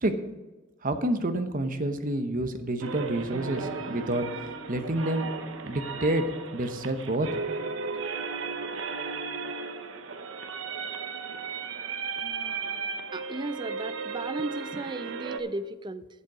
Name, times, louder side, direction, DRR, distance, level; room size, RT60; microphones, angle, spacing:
voice 1, 0.8-4.3 4.7-5.3 5.6-6.2 6.5-7.3, right 1 dB, 45° right, 8 dB, 0.9 m, -28 dB
sound 1, 2.8-15.4, right 4 dB, 90° right, 0.8 m, -35 dB
sound 2, 3.0-9.0, right 1 dB, 50° left, 3.7 m, -47 dB
voice 2, 13.1-16.1, right 2 dB, 25° right, 13 dB, 0.4 m, -35 dB
11.0 x 8.1 x 4.9 m, 1.2 s
head